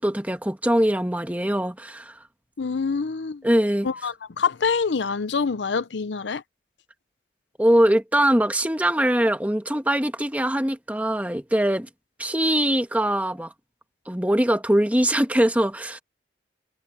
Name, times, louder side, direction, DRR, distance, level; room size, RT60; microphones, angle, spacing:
voice 1, 0.0-2.2 3.4-3.9 7.6-11.9 12.2-13.5 14.1-16.0, right 1 dB, 10° right, 1.4 m, -22 dB
voice 2, 2.6-3.4 3.8-6.4, left 5 dB, 85° left, 0.7 m, -26 dB
head